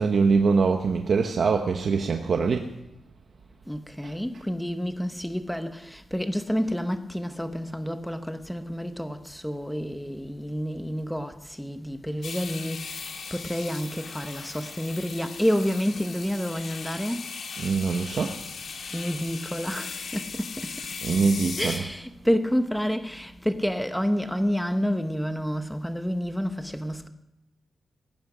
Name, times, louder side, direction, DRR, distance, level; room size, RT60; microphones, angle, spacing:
voice 1, 0.0-2.7 17.6-18.3 21.0-21.9, right 5 dB, 55° right, 1.0 m, -23 dB
voice 2, 3.7-17.3 18.9-21.0 21.3-27.1, equal, ahead, 1.0 m, -29 dB
sound 1, 12.2-21.8, left 5 dB, 65° left, 1.7 m, -38 dB
18.0 x 15.5 x 5.0 m
wide cardioid pair, 175°, 0 cm